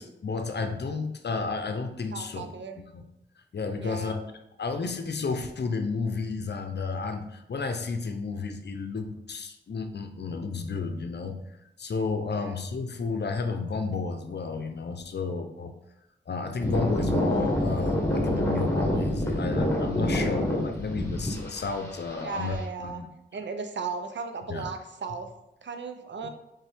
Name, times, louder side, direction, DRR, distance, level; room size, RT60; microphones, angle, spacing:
voice 1, 0.0-3.0 3.5-4.2 4.6-11.4 11.8-15.7 16.3-23.1 24.5-24.6 26.2-26.3, left 4 dB, 60° left, 7 dB, 0.6 m, -32 dB
voice 2, 2.1-2.8 3.8-4.1 12.3-12.6 22.2-23.0 23.3-25.3 25.6-26.3, right 5 dB, 65° right, 7 dB, 0.5 m, -36 dB
sound 1, 16.6-22.6, left 1 dB, 15° left, 1.3 m, -27 dB
4.4 x 3.4 x 3.4 m, 0.86 s
cardioid pair, 45°, 20 cm